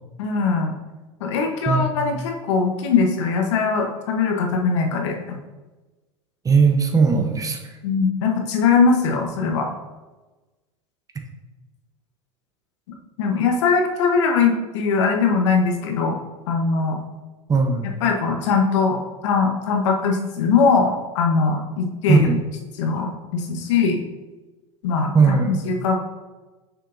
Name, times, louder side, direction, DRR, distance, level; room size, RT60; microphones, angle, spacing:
voice 1, 0.2-0.7 1.2-5.4 7.8-9.7 13.2-16.2 16.5-17.0 18.0-22.3 22.8-24.0 24.8-25.1 25.7-26.0, left 5 dB, 75° left, 3 dB, 1.2 m, -21 dB
voice 2, 1.7-2.0 6.4-7.8 17.5-17.9 22.1-22.4 25.1-25.6, right 5 dB, 20° right, 4 dB, 1.0 m, -18 dB
6.7 x 6.1 x 2.7 m, 1.2 s
hypercardioid pair, 90°, 15 cm